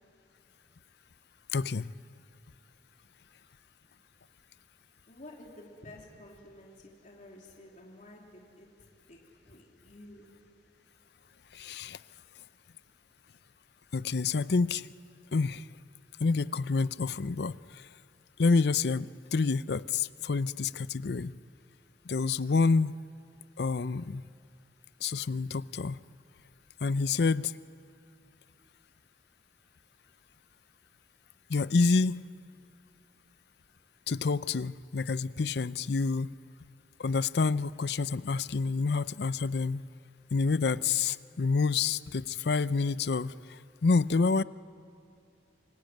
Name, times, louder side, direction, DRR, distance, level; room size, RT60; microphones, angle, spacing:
voice 1, 1.5-1.9 11.5-12.0 13.9-14.9 15.3-15.7 16.2-17.8 18.4-21.3 22.1-23.0 23.6-24.2 25.0-26.0 26.8-27.5 31.5-32.2 34.1-36.4 37.0-39.9 40.3-44.4, left 4 dB, 65° left, 17 dB, 0.5 m, -28 dB
voice 2, 5.1-8.7 9.1-9.2 9.4-10.3, left 1 dB, 45° left, -1 dB, 3.3 m, -51 dB
27.0 x 20.5 x 9.3 m, 2.5 s
head